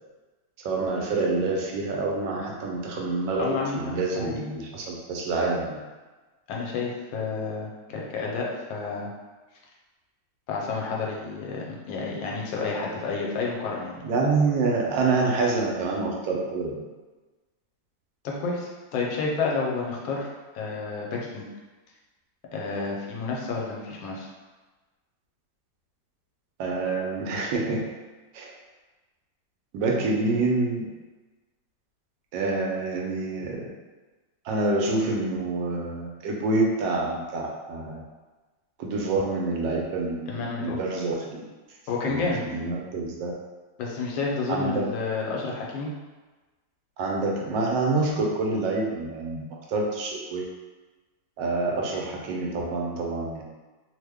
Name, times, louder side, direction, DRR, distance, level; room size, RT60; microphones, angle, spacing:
voice 1, 0.6-5.8 14.0-16.8 26.6-27.8 28.3-28.5 29.7-30.8 32.3-33.6 34.4-38.0 38.8-40.3 40.6-41.4 42.0-43.3 44.5-44.9 47.0-50.4 51.4-53.4, right 3 dB, 75° right, -1 dB, 1.2 m, -27 dB
voice 2, 3.4-3.8 4.2-4.4 6.5-9.1 10.5-14.0 18.2-20.3 20.5-21.5 22.5-24.3 40.3-40.8 41.9-42.4 43.8-45.9, left 4 dB, 80° left, -2 dB, 1.4 m, -30 dB
3.2 x 2.1 x 3.4 m, 1.2 s
omnidirectional pair, 2.0 m